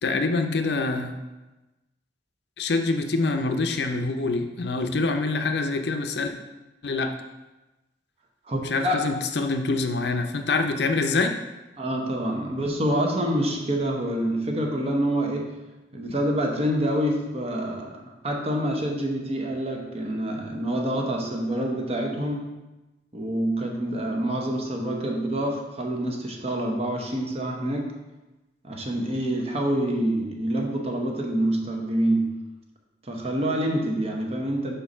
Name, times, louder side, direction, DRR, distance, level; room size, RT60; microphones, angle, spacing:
voice 1, 0.0-1.2 2.6-6.3 6.8-7.1 8.6-11.3, left 3 dB, 70° left, 6 dB, 0.6 m, -25 dB
voice 2, 8.5-9.1 11.8-15.5 15.9-22.5 23.1-27.9 28.6-32.3 33.0-34.7, right 1 dB, 35° right, 1 dB, 1.0 m, -27 dB
5.2 x 4.5 x 5.4 m, 1.1 s
head